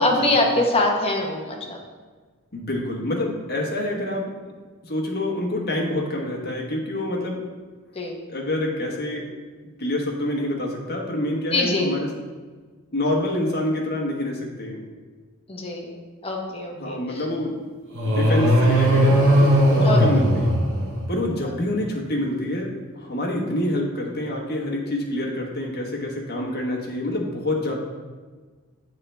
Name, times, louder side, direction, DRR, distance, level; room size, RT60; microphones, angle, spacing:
voice 1, 0.0-1.8 7.9-8.2 11.5-11.9 15.5-15.9 16.2-17.2 19.8-20.0 21.4-21.5, left 2 dB, 25° left, 0 dB, 1.0 m, -23 dB
voice 2, 2.5-4.3 4.8-7.4 8.3-9.2 9.8-12.0 12.9-14.8 16.7-17.6 18.0-20.5 21.1-22.7 22.9-27.8, left 1 dB, 45° left, -1 dB, 1.2 m, -27 dB
sound 1, 17.9-21.3, equal, 60° right, 1.1 m, -18 dB
8.8 x 3.7 x 3.3 m, 1.4 s
head